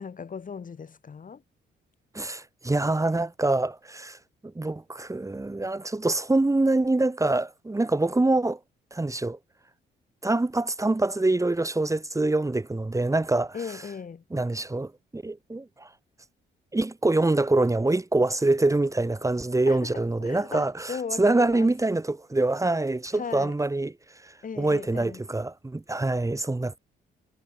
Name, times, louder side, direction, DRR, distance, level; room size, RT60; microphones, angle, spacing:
voice 1, 0.0-1.4 13.5-14.2 19.7-19.9 20.2-21.7 23.1-23.5 24.4-25.2, left 6 dB, 40° left, 7.1 m, -37 dB
voice 2, 2.1-8.6 8.9-9.4 10.2-13.8 14.3-15.9 16.7-26.8, right 2 dB, 15° right, 3.9 m, -25 dB
cardioid pair, 90°, 20 cm